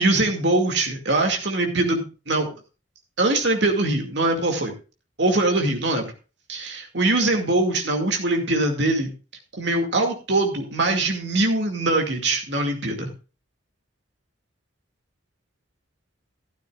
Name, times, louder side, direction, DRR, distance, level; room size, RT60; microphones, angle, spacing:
voice 1, 0.0-2.5 3.2-4.7 5.2-6.1 6.5-9.1 9.6-13.1, right 2 dB, 60° right, 3 dB, 2.3 m, -22 dB
14.0 x 12.5 x 2.4 m, 0.33 s
head